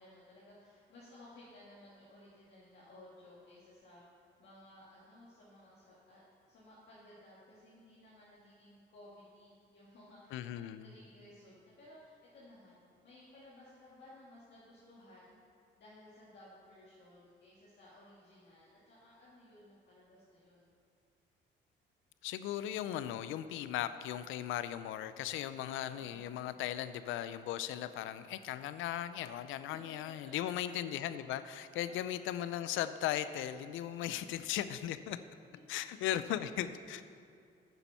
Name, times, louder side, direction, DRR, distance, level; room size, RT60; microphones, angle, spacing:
voice 1, 0.0-4.0 4.4-6.2 6.5-12.8 13.0-15.4 15.8-20.7 29.9-30.3 35.5-35.6, left 1 dB, 60° left, -8 dB, 2.1 m, -58 dB
voice 2, 10.3-10.9 22.2-35.2 35.7-37.1, left 11 dB, 90° left, 13 dB, 0.5 m, -37 dB
9.7 x 7.1 x 5.6 m, 2.4 s
cardioid pair, 90°, 20 cm